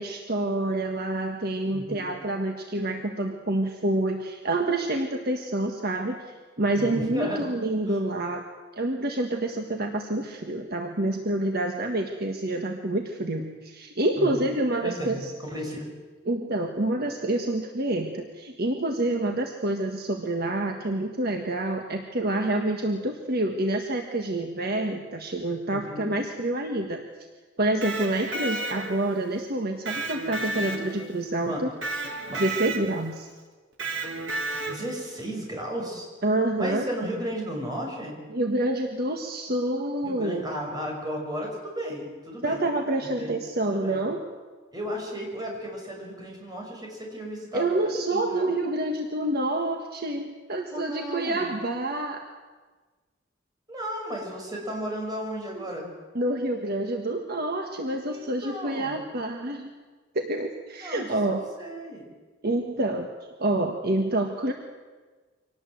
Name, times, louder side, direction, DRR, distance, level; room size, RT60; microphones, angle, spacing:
voice 1, 0.0-8.4 8.7-15.1 16.2-27.0 27.6-31.7 32.4-33.3 36.2-36.8 38.3-40.4 42.4-44.2 47.5-52.3 55.6-55.7 56.1-59.7 60.1-61.5 62.4-63.1 63.4-64.5, right 1 dB, 50° right, 4 dB, 1.6 m, -27 dB
voice 2, 1.7-2.1 6.7-7.4 7.9-8.0 14.1-14.5 14.8-15.9 25.7-26.2 31.5-31.7 32.3-32.4 34.7-36.1 36.6-38.2 40.0-42.6 43.0-43.3 43.7-44.0 44.7-48.5 50.6-51.5 53.7-55.9 58.1-59.0 60.8-62.1, equal, 20° right, 0 dB, 6.1 m, -34 dB
Electric guitar, 27.6-29.2 29.9-31.2 31.8-33.1 33.8-35.0, right 3 dB, 70° right, 2.8 m, -32 dB
25.0 x 18.5 x 7.8 m, 1.3 s
head